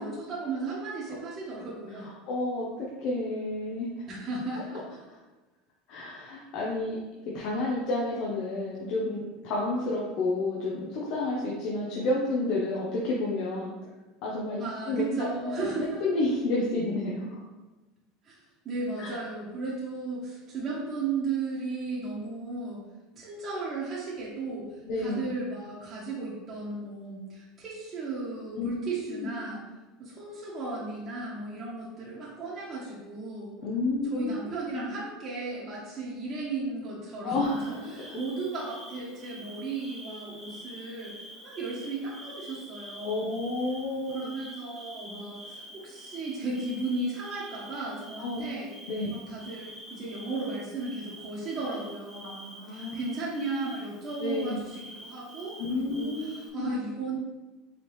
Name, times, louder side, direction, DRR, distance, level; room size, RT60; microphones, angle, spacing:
voice 1, 0.0-2.1 4.1-4.8 14.6-16.0 18.2-18.3 18.6-22.8 23.1-24.7 25.0-29.6 30.0-33.5 34.1-41.1 41.4-43.3 44.1-48.7 49.1-57.2, right 3 dB, 35° right, -7 dB, 1.1 m, -35 dB
voice 2, 1.9-3.9 5.9-7.0 7.3-13.7 14.2-15.0 15.4-17.4 19.0-19.2 24.9-25.3 28.5-28.7 29.1-29.4 33.6-34.9 37.2-38.2 43.0-44.3 48.2-48.5 48.9-49.2 52.6-53.0 54.2-54.6 55.7-56.7, left 2 dB, 55° left, -4 dB, 0.8 m, -30 dB
Bird / Cricket, 37.4-56.5, equal, 5° left, 1.2 m, -47 dB
4.9 x 3.5 x 3.1 m, 1.2 s
supercardioid pair, 135°, 0 cm